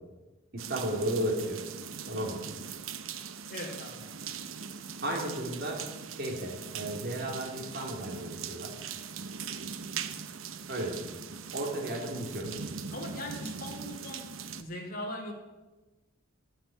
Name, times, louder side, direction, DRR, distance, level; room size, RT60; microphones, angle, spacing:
voice 1, 0.5-1.6 2.1-2.4 5.0-8.7 10.7-11.2 11.5-12.5, right 1 dB, 50° right, -1 dB, 3.2 m, -34 dB
sound 1, 0.6-14.6, right 6 dB, 80° right, 0.9 m, -41 dB
voice 2, 3.5-4.1 12.9-15.3, left 1 dB, 45° left, 1 dB, 3.4 m, -40 dB
12.5 x 7.6 x 9.9 m, 1.1 s
head